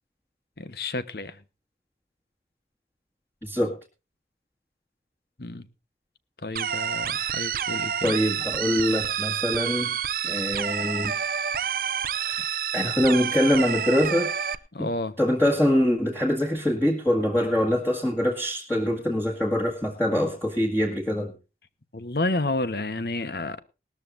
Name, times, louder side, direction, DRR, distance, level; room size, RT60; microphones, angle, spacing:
voice 1, 0.6-1.4 5.4-5.7 6.4-8.2 14.7-15.1 21.9-23.6, left 2 dB, 60° left, 13 dB, 1.1 m, -30 dB
voice 2, 3.4-3.8 8.0-9.9 10.2-11.1 12.3-14.3 14.8-14.9 15.2-21.3, left 1 dB, 10° left, -2 dB, 1.8 m, -24 dB
sound 1, 6.6-14.6, right 8 dB, 50° right, 0.7 m, -28 dB
19.0 x 13.5 x 2.6 m, 0.30 s
head